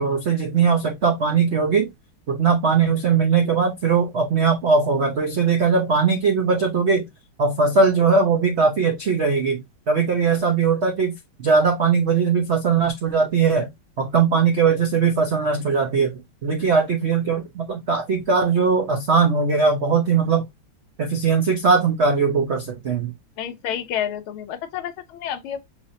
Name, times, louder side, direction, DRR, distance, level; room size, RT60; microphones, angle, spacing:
voice 1, 0.0-1.9 2.3-7.1 7.4-9.6 9.9-11.1 11.4-13.7 14.0-16.1 16.4-20.5 21.0-23.1, right 5 dB, 80° right, 0.6 m, -20 dB
voice 2, 23.4-25.6, left 9 dB, 80° left, 1.5 m, -29 dB
5.9 x 3.3 x 2.6 m
omnidirectional pair, 2.3 m